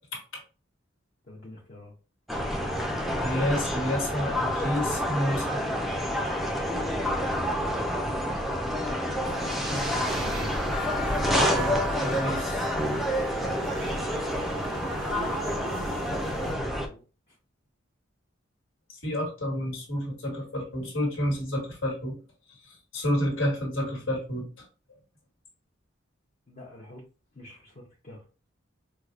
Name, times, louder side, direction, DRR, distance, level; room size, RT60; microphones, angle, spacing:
voice 1, 0.1-0.4 3.2-5.5 11.3-12.7 19.0-22.2 22.5-24.5, equal, 85° left, 0 dB, 1.4 m, -30 dB
voice 2, 1.2-1.9 9.9-10.8 13.3-14.1 14.9-17.4 26.5-27.0 27.3-28.2, left 1 dB, 40° left, -3 dB, 0.6 m, -44 dB
sound 1, 2.3-16.9, equal, ahead, 0.4 m, -28 dB
sound 2, 9.2-16.5, right 3 dB, 75° right, 0.6 m, -40 dB
4.5 x 2.1 x 2.4 m, 0.34 s
head